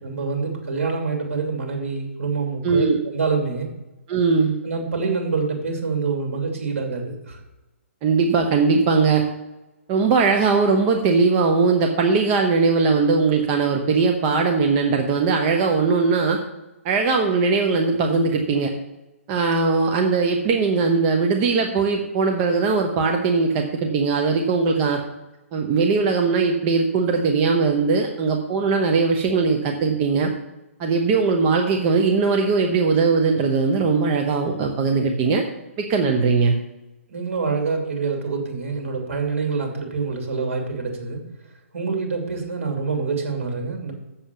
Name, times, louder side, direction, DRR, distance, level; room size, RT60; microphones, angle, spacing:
voice 1, 0.0-3.7 4.6-7.4 37.1-41.2 41.7-43.9, right 4 dB, 70° right, 3 dB, 2.8 m, -26 dB
voice 2, 2.6-3.0 4.1-4.6 8.0-9.2 9.9-16.4 16.8-18.7 19.3-25.0 25.5-30.3 30.8-35.4 35.8-36.6, right 4 dB, 30° right, 3 dB, 0.9 m, -20 dB
7.3 x 7.1 x 7.0 m, 1.0 s
hypercardioid pair, 140°, 8 cm